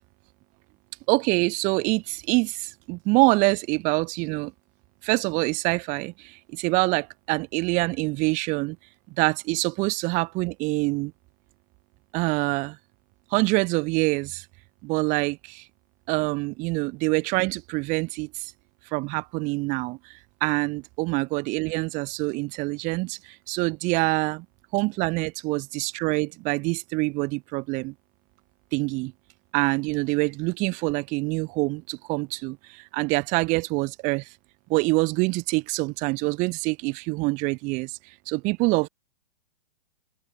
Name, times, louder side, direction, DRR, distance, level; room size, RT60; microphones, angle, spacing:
voice 1, 1.1-4.5 5.0-8.8 9.2-11.1 12.1-12.8 13.3-14.4 14.8-15.7 16.1-18.5 18.9-24.4 24.7-27.9 28.7-29.1 29.5-34.3 34.7-38.9, right 26 dB, 25° right, 0.9 m, -25 dB
open air
hypercardioid pair, 140°, 30 cm